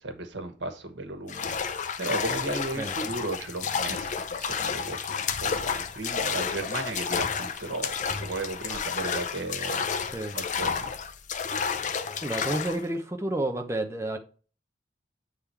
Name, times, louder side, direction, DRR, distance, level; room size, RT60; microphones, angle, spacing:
voice 1, 0.0-9.9 10.3-10.9, right 2 dB, 90° right, 1.3 m, -35 dB
sound 1, 1.3-12.8, left 6 dB, 45° left, 0.6 m, -31 dB
voice 2, 12.2-14.2, right 1 dB, 15° right, 0.7 m, -30 dB
8.5 x 3.7 x 4.4 m
head